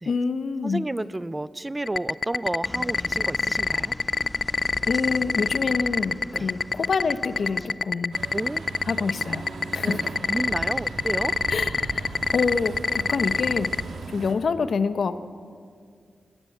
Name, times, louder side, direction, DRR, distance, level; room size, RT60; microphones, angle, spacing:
voice 1, 0.1-0.8 4.9-8.1 8.9-9.4 9.7-10.0 11.5-13.7 14.1-15.2, left 5 dB, 70° left, 12 dB, 1.0 m, -26 dB
voice 2, 0.6-3.9 6.3-6.5 8.3-8.6 9.8-10.0 10.3-11.3, right 2 dB, 20° right, 18 dB, 0.5 m, -31 dB
sound 1, 1.9-13.8, left 4 dB, 55° left, 0.4 m, -24 dB
sound 2, 2.6-7.7, left 1 dB, 20° left, 1.4 m, -41 dB
Truck, 8.1-14.4, right 3 dB, 85° right, 1.8 m, -37 dB
19.0 x 16.5 x 8.5 m, 2.1 s
cardioid pair, 55°, 0 cm